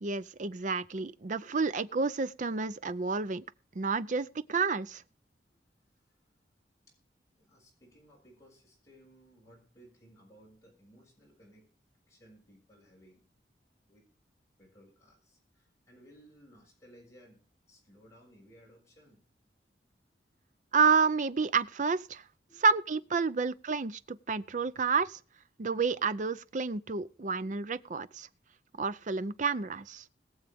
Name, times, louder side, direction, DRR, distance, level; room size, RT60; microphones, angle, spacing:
voice 1, 0.0-3.4 3.8-5.0 20.7-22.2 22.6-25.2 25.6-28.3 28.8-30.0, right 4 dB, 45° right, 0.5 m, -30 dB
voice 2, 7.3-11.7 12.1-13.3 13.8-14.0 14.6-19.2 22.5-22.7 27.0-27.2, equal, 20° left, 6.6 m, -59 dB
21.0 x 7.2 x 3.5 m
head